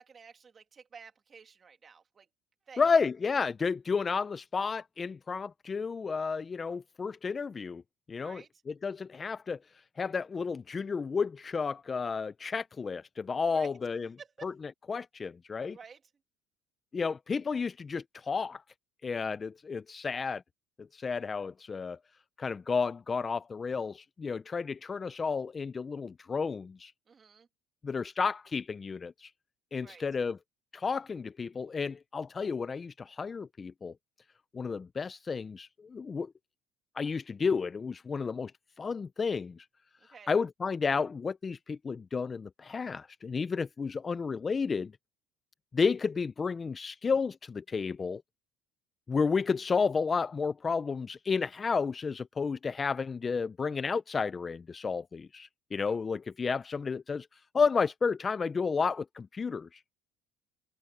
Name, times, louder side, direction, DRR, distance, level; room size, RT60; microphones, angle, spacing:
voice 1, 0.0-2.3 2.7-2.8 8.2-8.5 13.5-13.7 14.2-14.5 15.7-16.0 27.1-27.5 29.8-30.0 40.0-40.3, right 6 dB, 25° right, 2.1 m, -51 dB
voice 2, 2.8-7.8 8.1-9.6 10.0-14.1 14.4-14.5 14.9-15.8 16.9-18.6 19.0-20.4 20.9-22.0 22.4-26.9 27.8-29.3 29.7-30.4 30.7-33.9 34.5-36.3 37.0-38.5 38.8-39.7 40.3-44.9 45.7-48.2 49.1-57.3 57.5-60.0, left 5 dB, 20° left, 0.3 m, -32 dB
cardioid pair, 150°, 0 cm